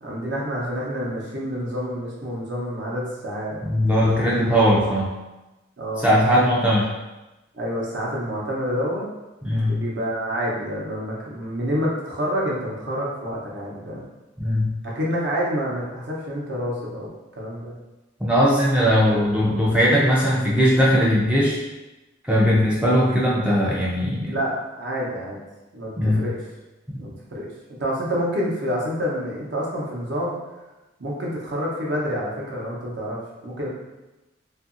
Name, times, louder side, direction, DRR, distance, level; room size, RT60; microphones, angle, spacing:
voice 1, 0.0-3.6 3.9-4.3 5.8-6.1 7.5-9.1 9.7-14.1 14.8-17.1 17.4-17.7 19.0-19.2 24.2-25.4 25.7-26.4 27.0-27.5 27.8-30.4 31.0-33.7, equal, 60° right, -4 dB, 0.7 m, -28 dB
voice 2, 3.6-5.1 6.0-6.9 9.4-9.8 14.4-14.7 18.2-21.6 22.3-24.4 26.0-26.2, equal, 5° right, -6 dB, 0.3 m, -19 dB
2.7 x 2.5 x 2.5 m, 1.0 s
head